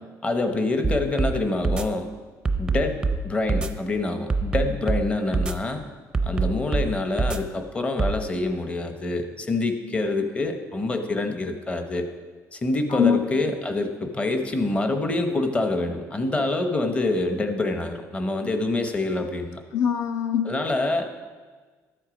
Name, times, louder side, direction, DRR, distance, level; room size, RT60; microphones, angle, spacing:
voice 1, 0.2-2.1 2.6-5.9 6.2-12.1 12.5-19.6 20.4-21.1, left 2 dB, 20° left, 6 dB, 0.9 m, -26 dB
sound 1, 0.8-1.3 1.6-1.8 2.4-3.2 3.5-3.7 4.3-5.0 5.3-5.5 6.1-6.9 7.2-7.4 8.0-8.1, right 4 dB, 10° right, 0.5 m, -23 dB
voice 2, 19.7-20.5, left 8 dB, 55° left, 8 dB, 0.6 m, -22 dB
13.0 x 7.9 x 5.1 m, 1.4 s
cardioid pair, 160°, 6 cm